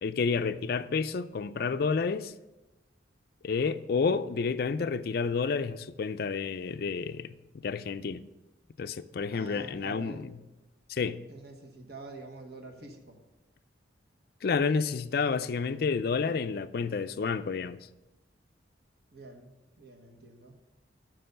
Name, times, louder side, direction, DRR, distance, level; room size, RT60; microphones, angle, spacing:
voice 1, 0.0-2.3 3.4-8.2 8.8-10.3 10.9-11.2 14.4-17.9, left 5 dB, 50° left, 0.4 m, -30 dB
voice 2, 9.3-10.3 11.3-13.2 19.1-20.6, right 3 dB, 55° right, 1.1 m, -47 dB
6.8 x 6.1 x 6.4 m
head